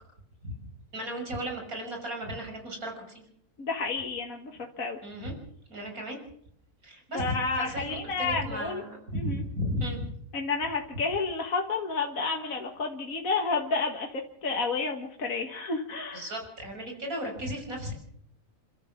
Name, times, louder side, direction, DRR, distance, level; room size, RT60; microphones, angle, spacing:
voice 1, 0.9-3.2 5.0-5.3 5.7-6.2 6.8-10.1 16.1-17.9, equal, 65° right, 2 dB, 6.5 m, -35 dB
voice 2, 3.6-5.0 7.1-8.8 9.2-9.4 10.3-16.3, left 4 dB, 65° left, 2 dB, 2.2 m, -30 dB
29.0 x 13.0 x 7.5 m, 0.69 s
omnidirectional pair, 1.6 m